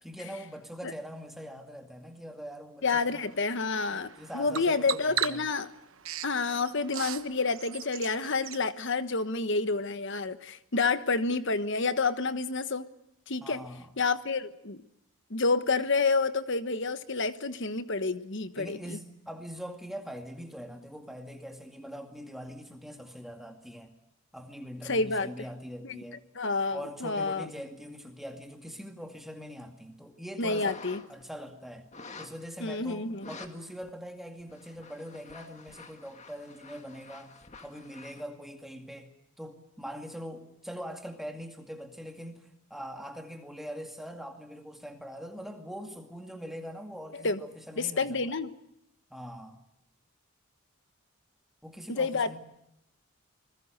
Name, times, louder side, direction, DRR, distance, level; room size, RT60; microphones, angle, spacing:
voice 1, 0.0-3.3 3.9-5.5 13.4-13.9 18.6-23.9 24.3-26.2 26.7-30.8 31.1-39.1 39.4-48.4 49.1-49.6 51.6-52.4, equal, ahead, 4 dB, 2.2 m, -43 dB
voice 2, 2.8-5.7 6.2-12.8 13.3-13.6 14.0-14.8 15.3-19.0 24.8-25.3 25.8-26.0 26.3-27.5 30.4-31.0 32.6-33.3 47.2-47.4 47.8-48.5 51.9-52.4, left 4 dB, 55° left, 12 dB, 1.2 m, -29 dB
Bird vocalization bird call bird song, 3.0-8.6, right 10 dB, 65° right, 1.2 m, -38 dB
sound 1, 30.5-31.2 31.9-32.4 33.1-33.5 33.8-33.9 34.4-38.2, left 3 dB, 30° left, 2.0 m, -48 dB
27.0 x 21.0 x 6.6 m, 0.81 s
head